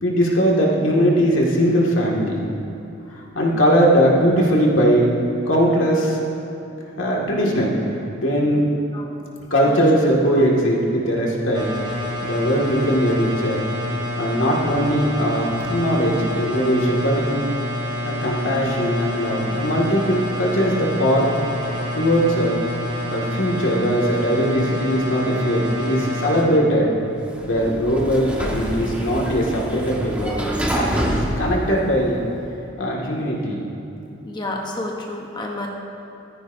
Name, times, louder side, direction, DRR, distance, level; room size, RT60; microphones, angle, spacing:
voice 1, 0.0-2.5 3.1-5.1 5.5-6.2 7.0-7.7 8.2-8.6 9.5-11.6 12.2-13.6 14.2-17.4 18.0-21.5 22.0-22.6 23.1-26.9 27.5-30.8 31.4-32.2 32.8-33.7, equal, 85° left, -3 dB, 2.0 m, -20 dB
sound 1, 11.5-26.4, left 1 dB, 20° right, 1.8 m, -28 dB
Sliding door, 27.2-32.4, equal, 5° right, 1.4 m, -26 dB
voice 2, 34.3-35.7, left 2 dB, 25° left, 0 dB, 0.9 m, -30 dB
14.5 x 14.0 x 2.7 m, 2.7 s
head